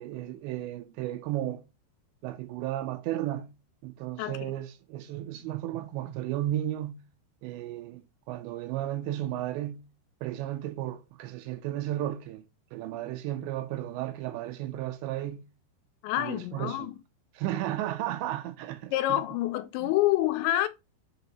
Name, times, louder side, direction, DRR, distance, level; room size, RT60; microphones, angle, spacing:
voice 1, 0.0-1.6 2.2-3.5 3.8-7.0 7.4-8.0 8.3-9.9 10.2-12.4 12.7-15.5 16.2-16.9 17.4-19.2 19.8-19.9, right 13 dB, 80° right, 2.8 m, -34 dB
voice 2, 4.2-4.5 16.0-17.0 18.9-20.7, left 14 dB, 80° left, 2.8 m, -27 dB
7.0 x 3.6 x 4.1 m
omnidirectional pair, 5.4 m